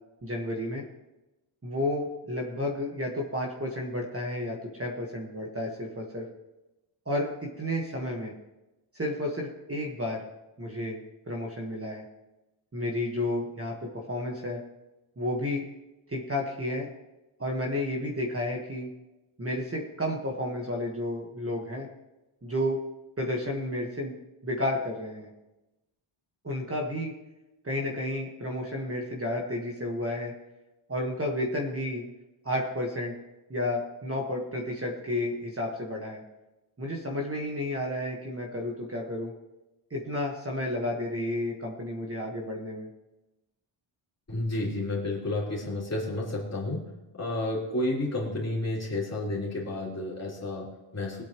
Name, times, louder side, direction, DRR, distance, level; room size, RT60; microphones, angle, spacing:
voice 1, 0.2-0.8 1.6-6.3 7.0-8.3 8.9-10.3 10.6-12.0 12.7-14.6 15.2-15.6 16.1-16.9 17.4-18.9 19.4-21.9 22.4-22.8 23.2-24.1 24.4-25.3 26.4-27.1 27.6-30.3 30.9-32.0 32.4-33.1 33.5-36.2 36.8-39.3 39.9-42.9, left 1 dB, 25° right, -1 dB, 1.5 m, -31 dB
voice 2, 44.3-51.2, left 2 dB, 30° left, -5 dB, 3.4 m, -31 dB
23.0 x 8.4 x 3.1 m, 1.0 s
wide cardioid pair, 170°, 50 cm